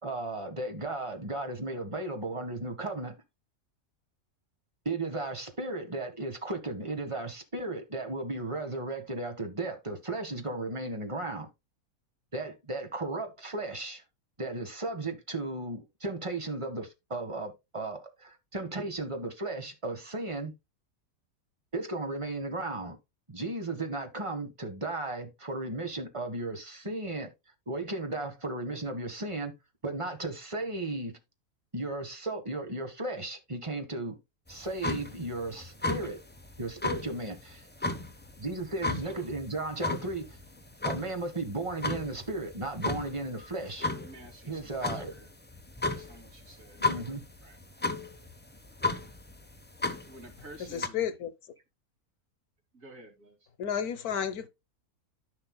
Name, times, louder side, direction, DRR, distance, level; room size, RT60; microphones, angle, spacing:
voice 1, 0.0-3.1 4.8-11.5 12.3-14.0 14.4-20.5 21.7-23.0 23.3-27.3 27.7-29.5 29.8-31.2 31.7-34.2 34.5-36.2 36.6-37.6 38.4-40.4 40.8-43.9 44.5-45.1 46.8-47.2, right 2 dB, 20° right, 1.6 m, -35 dB
sound 1, 34.5-50.9, left 3 dB, 10° left, 0.7 m, -35 dB
voice 2, 38.9-39.3 43.7-45.3 45.9-46.8 47.4-47.6 50.1-51.1 52.7-53.5, right 1 dB, 65° right, 2.9 m, -51 dB
voice 3, 50.7-51.3 53.6-54.5, left 8 dB, 90° left, 1.5 m, -31 dB
13.5 x 5.7 x 2.2 m
omnidirectional pair, 1.5 m